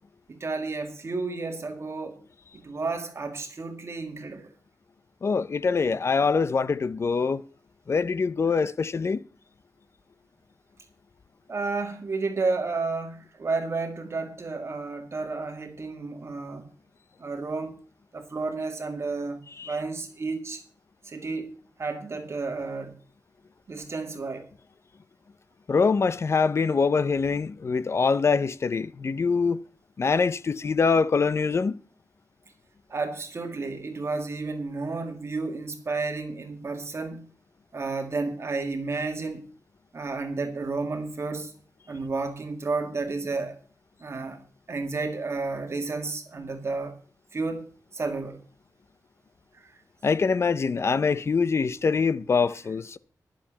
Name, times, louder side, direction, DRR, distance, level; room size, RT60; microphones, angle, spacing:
voice 1, 0.3-2.2 2.5-4.5 11.5-16.7 17.2-17.7 18.1-20.6 21.0-21.5 21.8-22.9 23.7-24.4 32.9-37.3 37.7-39.4 39.9-41.5 41.9-43.6 44.0-44.4 44.7-46.9 47.3-47.6 47.9-48.4 49.6-49.7, right 3 dB, 40° right, 2.0 m, -31 dB
voice 2, 5.2-7.4 7.9-9.2 19.6-19.7 25.7-29.6 30.0-31.8 50.0-53.0, left 5 dB, 40° left, 0.5 m, -24 dB
11.5 x 7.2 x 7.4 m
wide cardioid pair, 180°, 7 cm